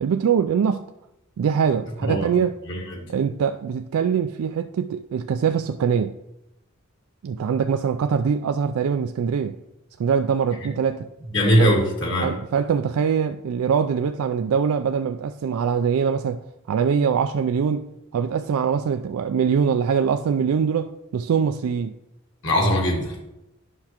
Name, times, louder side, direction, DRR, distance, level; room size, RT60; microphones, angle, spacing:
voice 1, 0.0-0.8 1.4-2.5 3.1-6.2 7.2-9.6 10.0-11.1 11.6-11.8 12.2-17.9 18.1-21.9, right 7 dB, 85° right, 0.3 m, -23 dB
voice 2, 2.7-3.1 11.3-12.3 22.4-23.2, equal, 60° left, 1.8 m, -21 dB
9.8 x 5.8 x 2.9 m
head